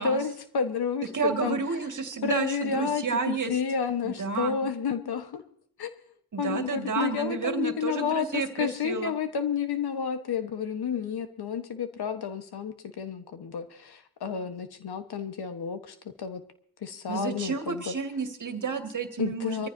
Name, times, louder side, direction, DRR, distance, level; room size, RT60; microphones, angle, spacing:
voice 1, 0.0-1.6 2.2-5.4 5.8-5.9 6.4-16.4 16.8-17.9 19.2-19.7, left 6 dB, 80° left, 8 dB, 1.4 m, -30 dB
voice 2, 1.1-3.5 4.0-4.6 6.3-9.1 17.1-19.7, right 5 dB, 50° right, 5 dB, 2.1 m, -31 dB
24.0 x 14.5 x 2.8 m, 0.62 s
cardioid pair, 70°, 38 cm